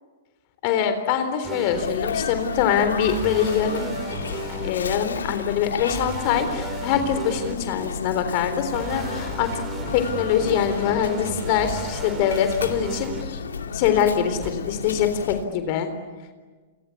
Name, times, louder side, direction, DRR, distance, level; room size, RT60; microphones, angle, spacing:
voice 1, 0.6-3.9 4.6-9.5 9.9-13.4 13.7-15.9, left 8 dB, 45° left, 9 dB, 3.8 m, -23 dB
sound 1, 1.4-1.9 3.1-4.7 5.9-7.5 8.7-13.2 14.4-14.5, right 4 dB, 20° right, 3.6 m, -35 dB
Sneeze, 1.7-15.5, left 6 dB, 90° left, 2.6 m, -32 dB
29.0 x 24.0 x 8.5 m, 1.4 s
hypercardioid pair, 125°, 0 cm